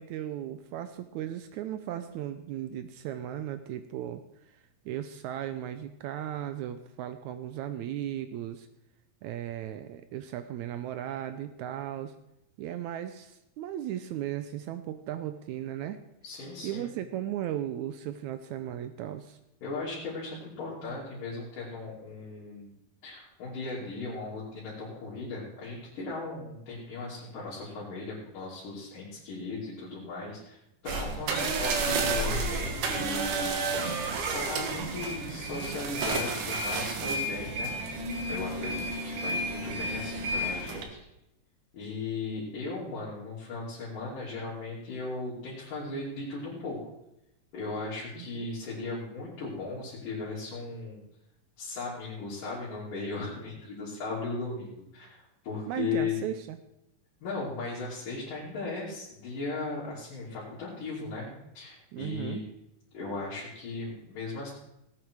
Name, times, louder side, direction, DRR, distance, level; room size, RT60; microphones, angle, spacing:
voice 1, 0.0-4.6 4.9-8.7 9.2-12.2 12.6-16.0 16.6-19.4 48.2-48.5 55.7-56.6 61.9-62.4, right 11 dB, 85° right, 10 dB, 1.7 m, -36 dB
voice 2, 16.2-16.9 19.6-22.8 23.0-30.6 30.8-37.8 38.3-41.0 41.7-46.8 47.5-51.0 51.6-56.2 57.2-61.3 61.5-62.4 62.9-64.5, left 3 dB, 70° left, -8 dB, 4.5 m, -37 dB
sound 1, 30.9-40.8, right 2 dB, 70° right, 2.9 m, -31 dB
18.0 x 9.0 x 4.7 m, 0.87 s
omnidirectional pair, 3.9 m